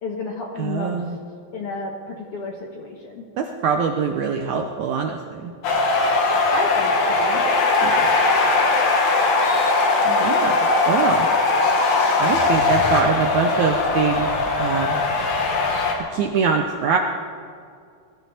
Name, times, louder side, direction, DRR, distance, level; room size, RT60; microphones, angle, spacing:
voice 1, 0.0-1.0 1.5-3.2 6.5-7.4, left 3 dB, 55° left, 0 dB, 1.7 m, -31 dB
voice 2, 0.6-1.2 3.4-5.5 7.8-8.0 10.1-10.6 10.9-11.3 12.2-14.3 14.6-15.0 16.1-17.0, right 6 dB, 75° right, 3 dB, 1.8 m, -23 dB
sound 1, 5.6-16.0, left 3 dB, 70° left, 3.5 m, -19 dB
21.5 x 13.5 x 4.2 m, 2.3 s
omnidirectional pair, 4.2 m